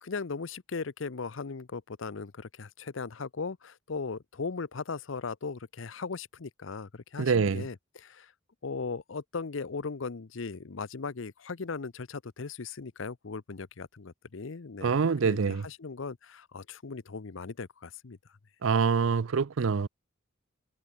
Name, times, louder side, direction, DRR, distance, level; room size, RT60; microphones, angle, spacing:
voice 1, 0.0-8.3 8.6-14.9 15.2-18.2, left 4 dB, 70° left, 0.7 m, -38 dB
voice 2, 7.2-7.6 14.8-15.6 18.6-19.9, right 5 dB, 80° right, 0.5 m, -25 dB
head